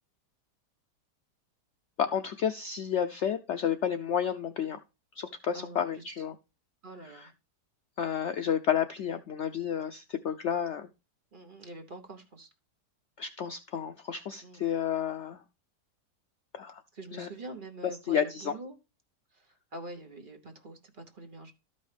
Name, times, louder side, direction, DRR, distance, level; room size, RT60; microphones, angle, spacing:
voice 1, 2.0-4.8 5.1-6.3 7.0-7.3 8.0-10.9 13.2-15.4 16.5-16.8 17.1-17.3 18.0-18.5, left 8 dB, 85° left, 9 dB, 0.6 m, -31 dB
voice 2, 6.8-7.3 11.3-12.5 14.4-14.6 16.9-18.8 19.3-21.5, right 2 dB, 35° right, 4 dB, 1.1 m, -45 dB
13.0 x 5.4 x 3.3 m, 0.28 s
omnidirectional pair, 1.8 m